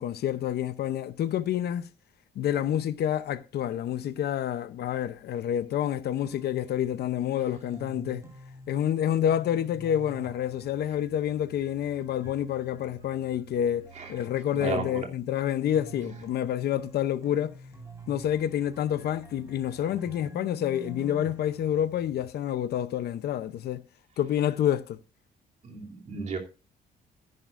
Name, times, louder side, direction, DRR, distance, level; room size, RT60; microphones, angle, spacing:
voice 1, 0.0-1.9 2.4-8.3 8.7-17.6 18.1-23.9 24.2-25.0, left 10 dB, 65° left, 0.7 m, -28 dB
sound 1, 6.2-22.2, right 1 dB, 15° right, 3.6 m, -47 dB
voice 2, 14.6-15.1 25.6-26.4, right 4 dB, 40° right, 2.9 m, -33 dB
13.5 x 10.5 x 2.5 m
cardioid pair, 160°, 18 cm